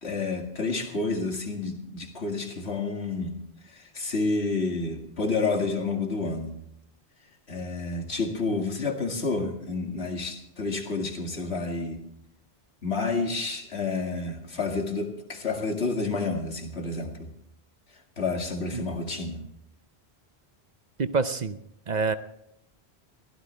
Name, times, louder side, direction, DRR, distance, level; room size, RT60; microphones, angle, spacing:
voice 1, 0.0-3.4 3.6-6.6 7.5-12.0 12.8-17.3 18.2-19.4, left 3 dB, 85° left, 3 dB, 2.4 m, -29 dB
voice 2, 21.0-21.6 21.9-22.1, right 4 dB, 45° right, 11 dB, 0.7 m, -26 dB
23.0 x 15.5 x 3.3 m, 0.77 s
omnidirectional pair, 1.1 m